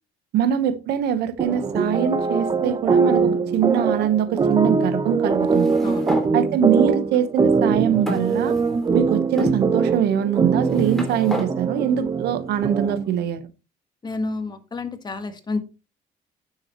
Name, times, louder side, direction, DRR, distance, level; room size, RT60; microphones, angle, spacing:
voice 1, 0.3-5.7 6.3-8.5 8.9-13.4, right 9 dB, 75° right, 1.2 m, -23 dB
sound 1, 1.4-13.2, right 4 dB, 25° right, 0.8 m, -22 dB
sound 2, 5.5-6.3 7.1-7.2 8.1-8.9 9.4-9.6 10.5-11.5, left 1 dB, ahead, 3.0 m, -31 dB
voice 2, 14.0-15.6, left 3 dB, 25° left, 1.5 m, -29 dB
9.6 x 7.1 x 3.0 m
cardioid pair, 110°, 17 cm